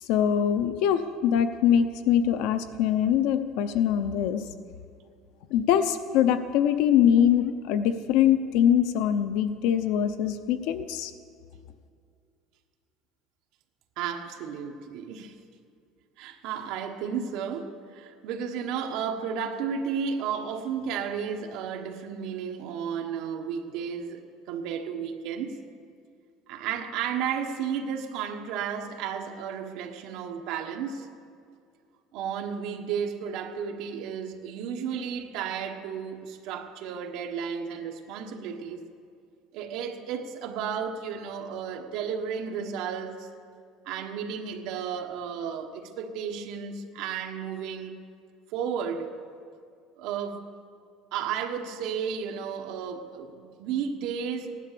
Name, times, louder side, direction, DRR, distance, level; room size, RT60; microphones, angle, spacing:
voice 1, 0.0-4.4 5.5-11.1, left 9 dB, 65° left, 0.6 m, -23 dB
voice 2, 14.0-15.4 16.2-25.6 26.5-31.1 32.1-38.8 39.5-43.3 43.8-48.0 48.5-49.1 50.0-50.4 51.1-54.5, right 7 dB, 60° right, 1.3 m, -33 dB
16.0 x 11.0 x 6.8 m
cardioid pair, 170°, 0 cm